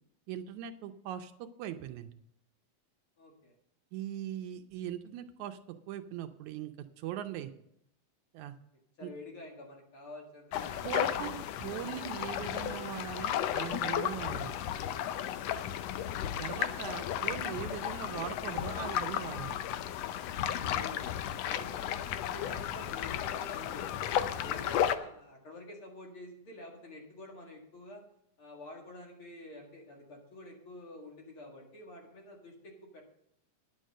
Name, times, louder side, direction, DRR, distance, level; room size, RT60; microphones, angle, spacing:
voice 1, 0.3-2.1 3.9-5.6 5.9-7.5 8.3-8.5 9.0-9.1 10.8-14.6 16.4-19.6, right 11 dB, 80° right, 8 dB, 2.0 m, -40 dB
voice 2, 3.2-3.5 9.0-11.3 20.6-23.9 24.1-28.0 28.4-33.0, left 1 dB, 50° left, 0 dB, 2.7 m, -48 dB
sound 1, 10.5-25.0, left 10 dB, 75° left, 1.5 m, -34 dB
10.0 x 7.7 x 6.4 m, 0.74 s
omnidirectional pair, 3.5 m